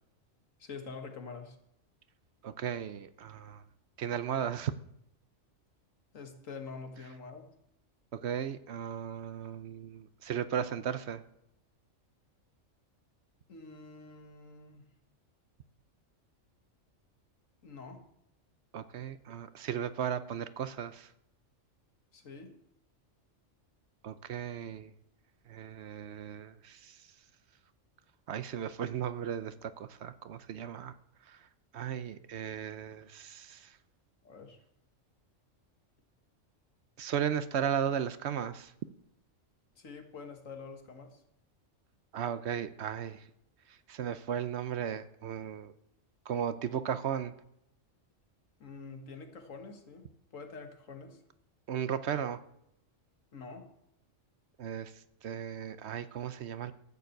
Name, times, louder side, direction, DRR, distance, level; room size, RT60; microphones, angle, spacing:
voice 1, 0.6-1.6 6.1-7.5 13.5-14.8 17.6-18.0 22.1-22.6 34.2-34.6 39.8-41.2 48.6-51.2 53.3-53.7, left 4 dB, 85° left, 5 dB, 2.0 m, -46 dB
voice 2, 2.4-3.6 4.0-4.7 8.1-11.2 18.7-21.1 24.0-24.9 25.5-26.9 28.3-30.9 31.3-31.4 31.7-33.7 37.0-38.7 42.1-43.2 43.9-45.7 46.3-47.3 51.7-52.4 54.6-54.9 55.2-56.7, right 9 dB, 65° right, 14 dB, 0.9 m, -35 dB
13.5 x 7.1 x 7.8 m, 0.78 s
omnidirectional pair, 1.3 m